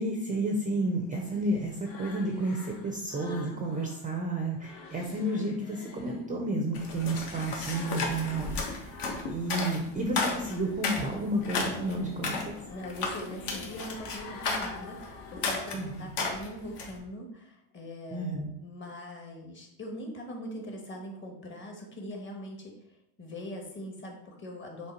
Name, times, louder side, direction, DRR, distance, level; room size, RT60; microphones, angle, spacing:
voice 1, 0.0-8.9 9.2-12.5 15.7-16.1 18.1-18.5, right 1 dB, 15° right, 2 dB, 0.5 m, -31 dB
sound 1, 0.6-4.0 4.4-9.8 10.2-16.0, left 4 dB, 85° left, 1.4 m, -49 dB
sound 2, 6.7-17.0, left 3 dB, 55° left, 1.5 m, -34 dB
voice 2, 12.7-22.7 23.2-24.9, equal, 25° left, 0 dB, 1.3 m, -41 dB
6.6 x 3.3 x 4.4 m, 0.80 s
cardioid pair, 150°, 48 cm